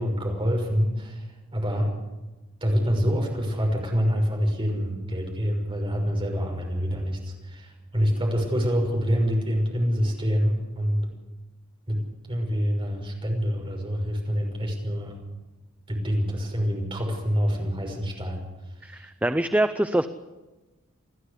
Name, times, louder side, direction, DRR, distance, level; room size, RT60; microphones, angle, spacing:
voice 1, 0.0-1.9 2.6-11.1 11.9-12.0 12.3-15.2 15.9-18.4 18.9-19.0, equal, 25° right, 1 dB, 6.1 m, -26 dB
voice 2, 18.8-20.1, right 1 dB, 5° right, 9 dB, 0.6 m, -24 dB
29.5 x 11.5 x 8.3 m, 1.1 s
head